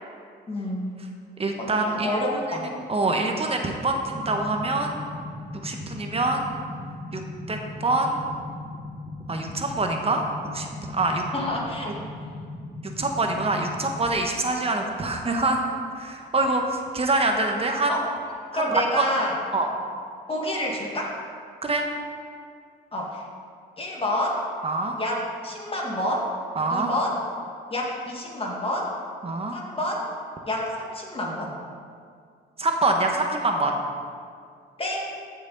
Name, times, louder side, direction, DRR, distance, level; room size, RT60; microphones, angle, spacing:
voice 1, 0.5-0.9 1.6-2.8 11.3-11.9 17.9-18.0 18.5-19.4 20.3-21.2 22.9-23.2 23.8-24.5 25.0-26.3 26.7-27.2 27.7-28.9 29.5-30.1 30.5-31.5 34.8-35.3, left 1 dB, 30° left, -2 dB, 1.9 m, -28 dB
voice 2, 1.4-2.6 2.9-5.0 5.6-6.5 7.1-7.2 7.5-8.2 9.3-10.7 10.9-11.2 13.0-15.6 15.9-17.9 18.5-19.1 19.5-19.7 21.6-21.8 24.6-24.9 26.6-26.9 29.2-29.6 32.6-33.7, right 2 dB, 30° right, 3 dB, 1.2 m, -25 dB
sound 1, 4.1-14.1, left 2 dB, 10° left, 1.6 m, -38 dB
14.5 x 6.3 x 4.0 m, 2.2 s
cardioid pair, 90°, 20 cm